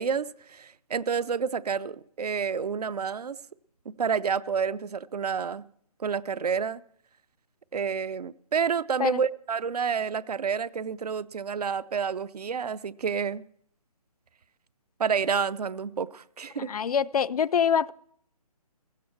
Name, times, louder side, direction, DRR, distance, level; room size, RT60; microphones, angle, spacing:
voice 1, 0.0-3.4 3.9-5.7 6.0-6.8 7.7-13.4 15.0-16.7, right 6 dB, 80° right, 0.6 m, -29 dB
voice 2, 16.6-17.9, left 7 dB, 70° left, 0.4 m, -25 dB
16.0 x 13.5 x 4.5 m
hypercardioid pair, 165°, 20 cm